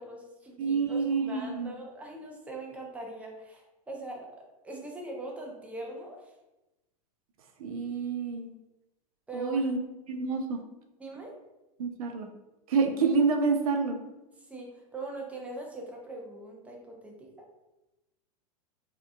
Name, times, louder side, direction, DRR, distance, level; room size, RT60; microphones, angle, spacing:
voice 1, 0.0-4.3 4.6-6.3 9.3-9.7 11.0-11.3 14.4-17.5, right 2 dB, 5° right, -1 dB, 0.5 m, -41 dB
voice 2, 0.6-1.7 7.6-8.5 9.3-9.8 10.1-10.6 11.8-12.3 12.7-14.0, right 4 dB, 65° right, 5 dB, 0.5 m, -28 dB
2.7 x 2.2 x 2.4 m, 0.99 s
hypercardioid pair, 95°, 20 cm